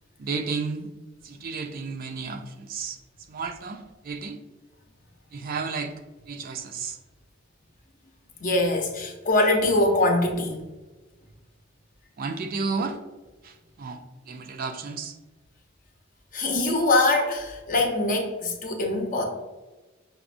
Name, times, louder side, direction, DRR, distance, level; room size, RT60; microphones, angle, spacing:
voice 1, 0.2-0.9 1.2-3.0 3.3-4.4 5.3-6.0 6.3-7.0 12.2-13.0 13.4-14.0 14.3-15.2, right 4 dB, 50° right, 7 dB, 0.4 m, -32 dB
voice 2, 8.4-10.6 16.3-19.2, left 2 dB, 45° left, 2 dB, 0.7 m, -23 dB
5.8 x 2.1 x 2.5 m, 1.2 s
head